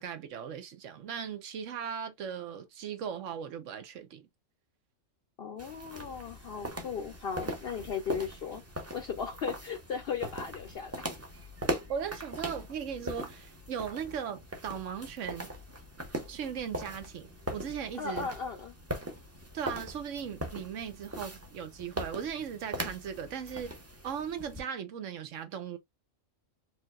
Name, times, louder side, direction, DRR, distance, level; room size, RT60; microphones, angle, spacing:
voice 1, 0.0-4.3 11.9-15.5 16.3-18.3 19.5-23.8 24.0-25.8, right 8 dB, 70° right, 1.1 m, -38 dB
voice 2, 5.4-8.6 8.9-11.0 18.0-18.7, left 6 dB, 55° left, 0.7 m, -36 dB
sound 1, 5.6-24.6, equal, 15° right, 0.7 m, -40 dB
4.8 x 2.8 x 2.4 m
omnidirectional pair, 1.4 m